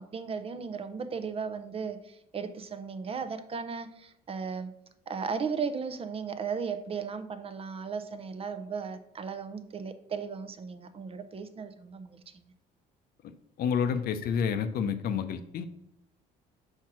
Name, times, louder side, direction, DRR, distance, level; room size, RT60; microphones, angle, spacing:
voice 1, 0.0-4.7 5.1-12.5, right 5 dB, 35° right, 9 dB, 0.6 m, -36 dB
voice 2, 13.6-15.7, left 7 dB, 65° left, 10 dB, 0.7 m, -29 dB
4.8 x 4.5 x 5.9 m, 0.76 s
cardioid pair, 110°, 17 cm